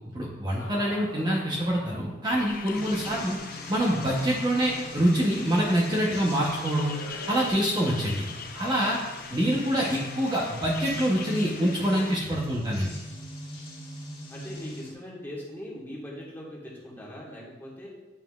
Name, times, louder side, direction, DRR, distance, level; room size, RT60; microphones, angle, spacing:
voice 1, 0.1-3.4 3.7-6.9 7.3-8.3 8.5-9.0 9.3-12.9, equal, 20° right, -4 dB, 0.8 m, -25 dB
sound 1, 0.6-2.2 3.5-5.3 6.8-7.5, left 2 dB, 90° left, 0.7 m, -44 dB
sound 2, 2.2-12.2, left 5 dB, 50° left, 0.6 m, -42 dB
sound 3, 2.7-14.9, left 1 dB, 30° left, 1.7 m, -42 dB
voice 2, 14.3-17.9, left 1 dB, 10° left, -5 dB, 1.4 m, -40 dB
9.2 x 5.6 x 2.4 m, 1.1 s
head